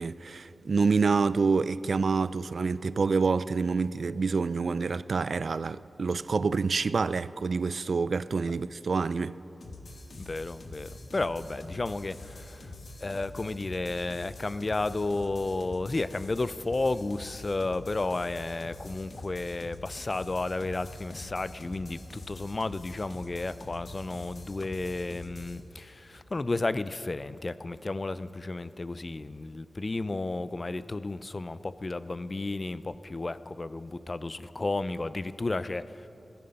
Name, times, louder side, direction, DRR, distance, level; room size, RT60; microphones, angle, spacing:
voice 1, 0.0-9.4, right 4 dB, 70° right, 0.3 m, -27 dB
sound 1, 9.6-25.6, left 2 dB, 65° left, 1.8 m, -45 dB
voice 2, 10.2-12.7 13.0-36.1, left 2 dB, 40° left, 0.5 m, -32 dB
17.5 x 13.5 x 5.4 m
wide cardioid pair, 70°, 0 cm